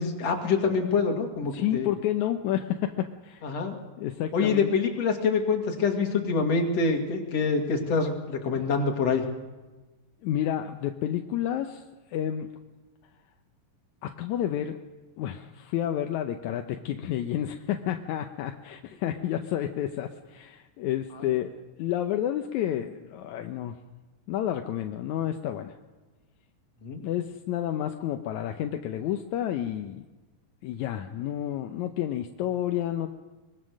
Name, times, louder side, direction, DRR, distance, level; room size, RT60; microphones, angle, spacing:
voice 1, 0.0-1.9 3.4-3.7 4.3-9.2 26.8-27.0, left 4 dB, 50° left, 2 dB, 3.2 m, -26 dB
voice 2, 1.5-3.4 4.0-4.7 8.6-8.7 10.2-11.8 12.1-12.5 14.0-14.8 15.2-23.8 24.3-25.8 27.0-30.0 30.6-33.1, left 11 dB, 75° left, 5 dB, 1.9 m, -30 dB
23.5 x 21.5 x 6.4 m, 1.2 s
omnidirectional pair, 4.0 m